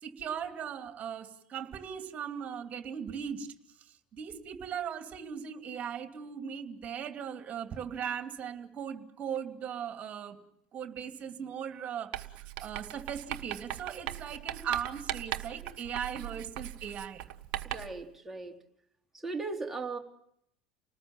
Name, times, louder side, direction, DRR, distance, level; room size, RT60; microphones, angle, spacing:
voice 1, 0.0-3.5 3.8-10.4 10.7-17.2, right 8 dB, 35° right, 7 dB, 2.8 m, -38 dB
Writing, 12.1-18.0, right 13 dB, 55° right, 1.4 m, -39 dB
voice 2, 17.6-18.5 19.2-20.0, right 3 dB, 10° right, 0 dB, 3.4 m, -37 dB
29.5 x 19.5 x 7.4 m, 0.73 s
figure-of-eight pair, 70°, 4 cm